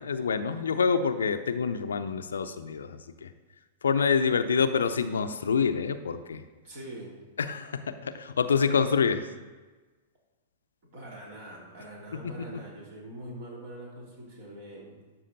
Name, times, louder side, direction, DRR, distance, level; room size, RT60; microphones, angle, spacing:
voice 1, 0.0-3.3 3.8-6.4 7.4-9.3 12.5-12.6, left 6 dB, 70° left, 10 dB, 0.5 m, -27 dB
voice 2, 6.6-7.2 10.9-15.2, right 1 dB, 55° right, -3 dB, 3.3 m, -44 dB
12.5 x 5.8 x 4.0 m, 1.3 s
figure-of-eight pair, 100°, 0 cm